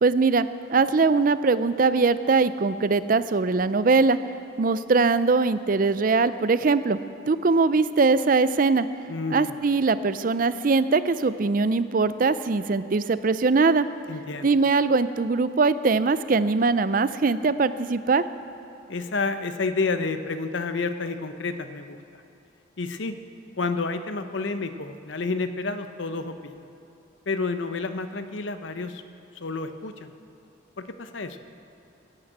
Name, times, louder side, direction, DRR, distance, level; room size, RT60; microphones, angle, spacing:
voice 1, 0.0-4.2 4.6-7.0 7.3-8.9 9.3-13.9 14.4-18.2, right 4 dB, 45° right, 14 dB, 0.4 m, -21 dB
voice 2, 9.1-9.6 14.1-14.5 18.9-22.0 22.8-23.1 23.6-26.5 27.3-29.0 29.4-30.1 30.8-31.4, left 3 dB, 70° left, 9 dB, 0.8 m, -30 dB
18.0 x 10.0 x 8.0 m, 2.7 s
head